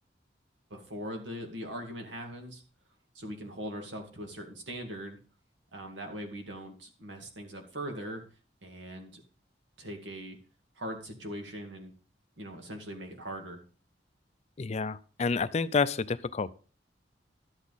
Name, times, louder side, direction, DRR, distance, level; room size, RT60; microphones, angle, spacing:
voice 1, 0.7-2.6 3.1-5.2 5.7-8.2 8.6-9.2 9.8-10.4 10.8-11.9 12.4-13.6, equal, 85° right, 4 dB, 2.2 m, -40 dB
voice 2, 14.6-16.5, left 4 dB, 35° left, 15 dB, 0.5 m, -29 dB
12.0 x 8.3 x 4.1 m, 0.37 s
head